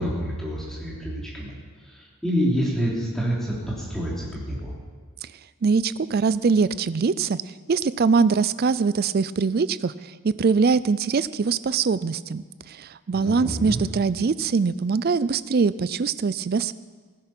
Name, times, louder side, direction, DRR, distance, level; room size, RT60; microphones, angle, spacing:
voice 1, 0.0-1.5 1.8-4.7 13.1-13.8, equal, ahead, -6 dB, 3.3 m, -27 dB
voice 2, 5.6-7.4 7.7-9.9 10.2-16.8, right 5 dB, 45° right, 17 dB, 0.4 m, -22 dB
16.5 x 10.0 x 6.0 m, 1.5 s
head